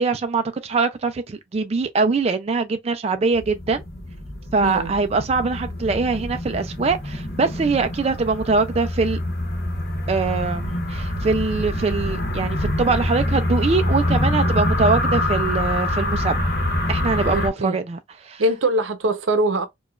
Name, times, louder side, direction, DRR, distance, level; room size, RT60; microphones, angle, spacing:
voice 1, 0.0-3.8 4.5-9.2 10.1-16.4 16.9-18.4, right 4 dB, 30° right, 0.3 m, -23 dB
sound 1, 3.3-17.5, left 1 dB, 50° left, 1.1 m, -25 dB
voice 2, 4.6-4.9 17.3-17.8 18.4-19.7, right 1 dB, 80° right, 0.7 m, -22 dB
4.8 x 2.3 x 2.3 m
head